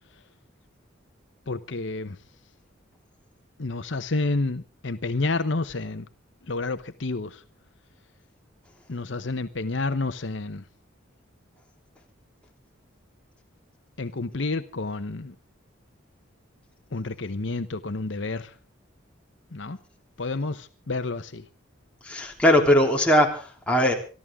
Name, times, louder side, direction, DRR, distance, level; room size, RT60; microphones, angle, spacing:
voice 1, 1.5-2.2 3.6-6.1 6.5-7.4 8.9-10.6 14.0-15.3 16.9-18.5 19.5-19.8 20.2-21.4, left 3 dB, 65° left, 10 dB, 0.9 m, -29 dB
voice 2, 22.0-23.9, equal, 5° left, 0 dB, 3.3 m, -20 dB
25.0 x 14.0 x 3.6 m, 0.37 s
head